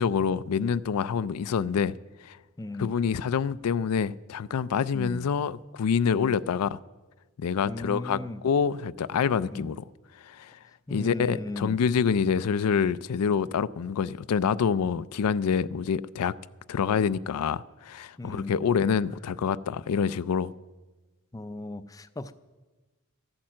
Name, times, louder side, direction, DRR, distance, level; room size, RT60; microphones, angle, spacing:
voice 1, 0.0-1.9 2.2-2.4 2.8-6.8 7.4-9.8 10.2-10.6 10.9-16.3 16.7-20.5, left 6 dB, 85° left, 0.4 m, -26 dB
voice 2, 2.6-2.9 4.9-5.3 6.1-6.4 7.6-8.4 9.5-9.7 10.9-11.8 18.2-18.5 21.3-22.3, left 2 dB, 15° left, 0.4 m, -36 dB
14.0 x 8.8 x 7.5 m
head